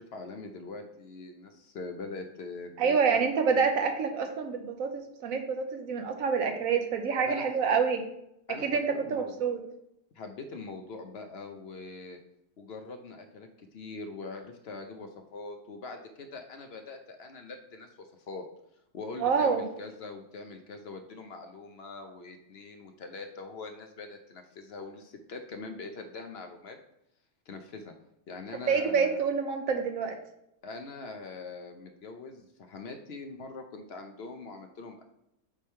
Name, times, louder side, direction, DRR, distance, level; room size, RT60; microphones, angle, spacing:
voice 1, 0.0-3.2 7.3-7.5 8.5-9.3 10.1-12.2 12.6-17.9 18.3-18.4 18.9-26.8 27.5-27.9 28.3-29.2 30.6-35.0, left 3 dB, 55° left, 6 dB, 0.7 m, -43 dB
voice 2, 2.8-8.0 8.6-9.6 19.2-19.7 28.6-30.2, right 5 dB, 60° right, 5 dB, 1.2 m, -27 dB
8.7 x 3.4 x 4.4 m, 0.80 s
omnidirectional pair, 1.7 m